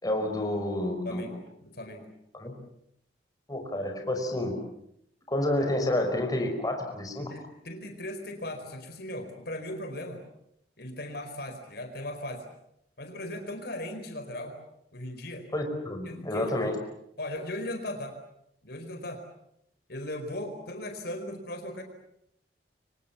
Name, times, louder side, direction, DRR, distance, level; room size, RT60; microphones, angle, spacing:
voice 1, 0.0-1.2 2.3-2.6 3.5-4.6 5.3-7.3 15.5-16.8, left 1 dB, 20° left, 3 dB, 5.3 m, -29 dB
voice 2, 1.0-2.1 7.2-10.2 10.8-12.4 13.0-14.6 14.9-15.5 16.1-16.7 17.2-18.2 18.6-19.2 19.9-21.8, left 1 dB, 65° left, 6 dB, 4.7 m, -38 dB
30.0 x 25.0 x 7.2 m, 0.77 s
head